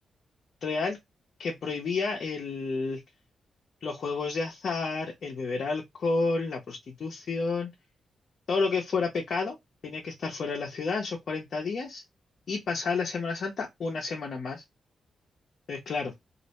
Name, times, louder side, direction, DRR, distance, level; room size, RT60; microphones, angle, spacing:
voice 1, 0.6-1.0 1.4-3.0 3.8-7.7 8.5-9.6 9.8-12.0 12.5-14.6 15.7-16.1, left 4 dB, 65° left, 0.6 m, -30 dB
2.4 x 2.0 x 2.9 m
cardioid pair, 70°, 0 cm